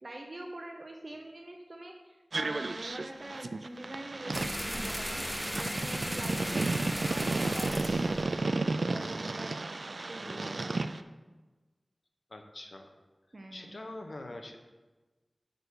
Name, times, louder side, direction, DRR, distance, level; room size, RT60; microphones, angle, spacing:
voice 1, 0.0-10.5 13.3-13.7, right 1 dB, 55° right, 2 dB, 0.9 m, -45 dB
sound 1, 2.3-11.0, right 3 dB, 75° right, 0.4 m, -33 dB
sound 2, 4.3-9.2, equal, 5° left, 0.7 m, -36 dB
voice 2, 10.2-10.6 12.3-12.9 13.5-14.6, left 2 dB, 65° left, 4 dB, 1.0 m, -44 dB
6.8 x 5.3 x 6.3 m, 1.2 s
wide cardioid pair, 50°, 0 cm